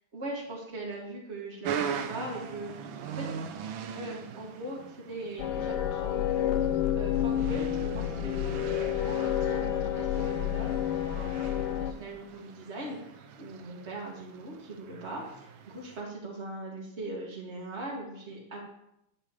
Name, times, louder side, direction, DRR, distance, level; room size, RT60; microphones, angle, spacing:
voice 1, 0.1-2.7 3.1-3.4 3.9-6.6 6.9-18.6, right 2 dB, 30° right, -3 dB, 2.7 m, -40 dB
sound 1, 1.6-16.0, right 7 dB, 70° right, 1.5 m, -41 dB
sound 2, 5.4-11.9, left 11 dB, 85° left, 0.9 m, -29 dB
11.5 x 11.0 x 3.3 m, 0.80 s
omnidirectional pair, 2.3 m